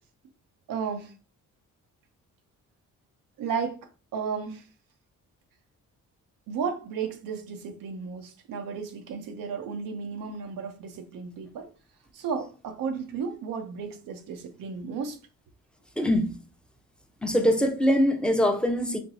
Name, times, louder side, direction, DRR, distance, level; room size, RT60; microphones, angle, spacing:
voice 1, 0.7-1.1 3.4-4.7 6.5-11.7 12.1-15.2, right 6 dB, 85° right, 0.8 m, -34 dB
voice 2, 16.0-16.4 17.2-19.0, equal, 5° left, 0.7 m, -23 dB
4.4 x 2.9 x 2.7 m
cardioid pair, 75°, 32 cm